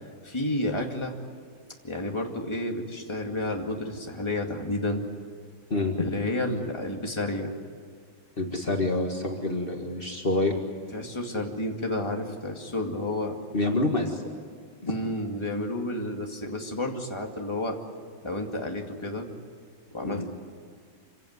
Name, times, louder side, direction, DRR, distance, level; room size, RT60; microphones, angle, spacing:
voice 1, 0.2-1.1 1.8-5.0 5.9-7.5 10.9-13.4 14.8-17.8 18.2-19.3 19.9-20.3, left 1 dB, 15° left, 1 dB, 1.1 m, -31 dB
voice 2, 8.4-10.6 13.5-14.2 14.8-15.0 20.0-20.3, left 2 dB, 70° left, 2 dB, 0.5 m, -27 dB
27.0 x 17.5 x 9.6 m, 2.1 s
omnidirectional pair, 4.4 m